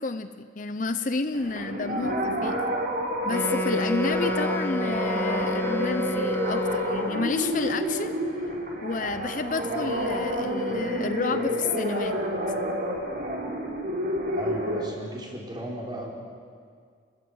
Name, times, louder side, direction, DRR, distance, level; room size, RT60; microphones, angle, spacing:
voice 1, 0.0-2.6 3.2-8.2 8.8-12.2, left 3 dB, 45° left, 10 dB, 0.7 m, -30 dB
sound 1, 1.3-14.8, equal, 50° right, 5.0 m, -29 dB
Wind instrument woodwind instrument, 3.3-7.4, left 1 dB, 10° left, 1.0 m, -31 dB
voice 2, 14.3-16.1, equal, 25° right, -2 dB, 4.5 m, -36 dB
28.5 x 20.5 x 8.0 m, 2.1 s
head